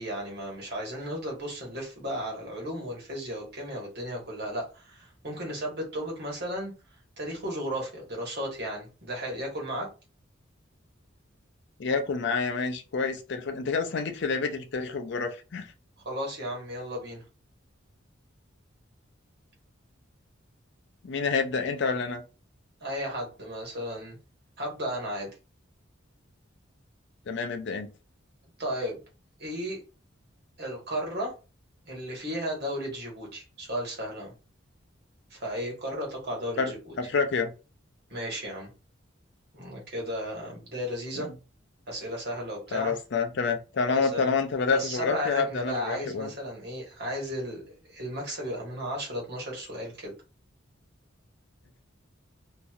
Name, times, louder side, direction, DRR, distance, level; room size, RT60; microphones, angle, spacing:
voice 1, 0.0-6.7 7.2-9.9 16.0-17.2 22.8-24.2 24.6-25.3 28.6-29.0 29.4-29.8 30.6-31.3 31.8-34.3 35.3-36.9 38.1-38.7 39.5-41.3 41.9-43.0 43.9-44.3 44.7-50.1, equal, 55° right, 1.3 m, -34 dB
voice 2, 11.8-15.7 21.0-22.2 27.3-27.9 36.6-37.5 41.2-41.3 42.7-46.3, left 4 dB, 60° left, 0.5 m, -28 dB
2.9 x 2.6 x 2.4 m
head